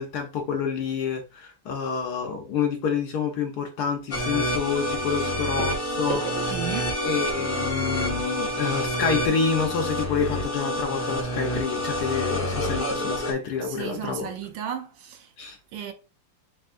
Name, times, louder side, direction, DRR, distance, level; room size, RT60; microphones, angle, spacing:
voice 1, 0.0-6.2 7.0-14.3 15.4-15.6, left 6 dB, 70° left, 0.9 m, -28 dB
sound 1, 4.1-13.3, equal, 40° left, 0.7 m, -28 dB
sound 2, 5.6-10.0 10.8-10.9 11.1-11.3 11.8-11.9, right 5 dB, 90° right, 1.9 m, -39 dB
voice 2, 6.5-6.9 13.6-15.3 15.7-15.9, right 8 dB, 70° right, 1.2 m, -34 dB
4.2 x 3.5 x 2.5 m
omnidirectional pair, 2.4 m